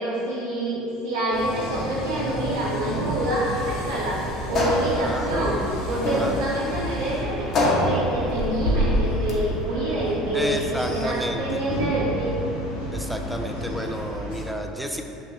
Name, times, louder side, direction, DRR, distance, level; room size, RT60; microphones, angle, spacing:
voice 1, 0.0-12.4, right 1 dB, 80° right, -7 dB, 0.6 m, -27 dB
sound 1, 1.3-14.4, equal, 85° left, 0.9 m, -32 dB
sound 2, 2.7-13.8, left 1 dB, 30° right, 1.0 m, -41 dB
sound 3, 3.9-9.7, left 1 dB, 45° left, 0.8 m, -25 dB
voice 2, 5.0-5.6 6.1-6.5 10.3-11.6 12.9-15.0, equal, ahead, 3 dB, 0.4 m, -31 dB
6.1 x 2.3 x 2.9 m, 2.8 s
hypercardioid pair, 75°, 0 cm